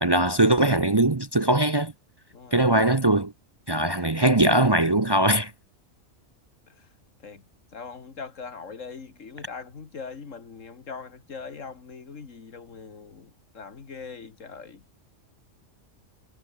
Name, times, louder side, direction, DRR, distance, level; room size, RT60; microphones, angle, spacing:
voice 1, 0.0-1.9 2.5-3.3 3.7-5.5, right 1 dB, 25° right, 0.7 m, -21 dB
voice 2, 2.3-2.7 6.8-6.9 7.2-7.4 7.7-14.8, left 5 dB, 80° left, 2.3 m, -41 dB
omnidirectional pair, 1.3 m